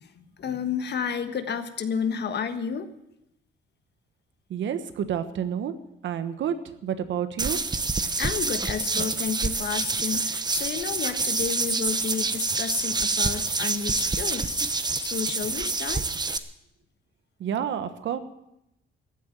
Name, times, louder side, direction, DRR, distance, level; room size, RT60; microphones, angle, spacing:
voice 1, 0.0-2.9 8.2-14.6 15.0-16.0, left 7 dB, 55° left, 9 dB, 1.4 m, -31 dB
voice 2, 4.5-5.7 6.0-7.6 17.4-18.2, right 9 dB, 70° right, 11 dB, 1.3 m, -29 dB
sound 1, 7.4-16.4, right 3 dB, 20° right, 1.0 m, -27 dB
14.5 x 8.9 x 9.0 m, 0.84 s
cardioid pair, 90°, 20 cm